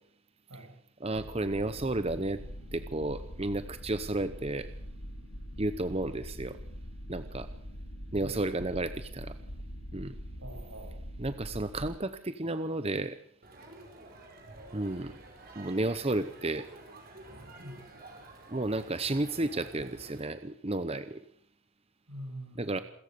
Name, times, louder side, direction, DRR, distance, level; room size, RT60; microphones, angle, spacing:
voice 1, 1.0-2.4 2.7-4.7 5.6-6.6 7.1-7.5 8.1-9.4 9.9-10.2 11.2-13.2 14.7-15.2 15.5-16.7 18.5-21.2 22.6-22.8, right 2 dB, 25° right, 11 dB, 0.8 m, -32 dB
sound 1, 1.1-11.9, equal, 90° left, 4.3 m, -43 dB
voice 2, 10.4-11.0 17.6-17.9 22.1-22.8, right 1 dB, 75° right, 4 dB, 7.7 m, -44 dB
Crowd, 13.4-20.2, right 2 dB, 45° right, 5.2 m, -50 dB
28.0 x 14.5 x 6.9 m, 0.65 s
head